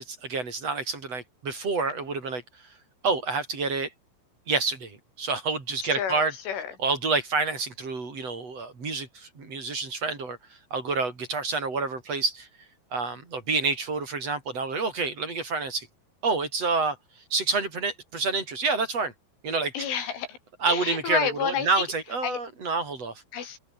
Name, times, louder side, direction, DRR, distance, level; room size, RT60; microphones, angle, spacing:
voice 1, 0.0-2.4 3.0-3.9 4.5-6.3 6.8-10.4 10.7-12.5 12.9-15.9 16.2-17.0 17.3-19.1 19.4-19.7 20.6-23.2, right 4 dB, 30° right, 6.3 m, -28 dB
voice 2, 5.9-6.8 19.7-20.4 20.7-21.8 22.2-22.4 23.3-23.6, left 8 dB, 75° left, 6.6 m, -30 dB
omnidirectional pair, 5.6 m